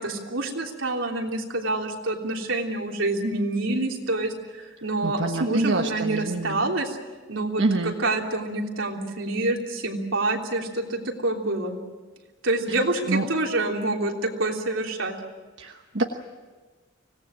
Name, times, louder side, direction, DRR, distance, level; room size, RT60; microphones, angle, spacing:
voice 1, 0.0-7.0 7.3-11.8 12.4-15.1, right 2 dB, 85° right, 1 dB, 3.3 m, -27 dB
voice 2, 5.0-6.6 7.6-7.9 12.7-12.8 13.1-13.3 15.6-16.0, right 2 dB, 65° right, 4 dB, 1.2 m, -26 dB
25.0 x 18.0 x 8.9 m, 1.3 s
head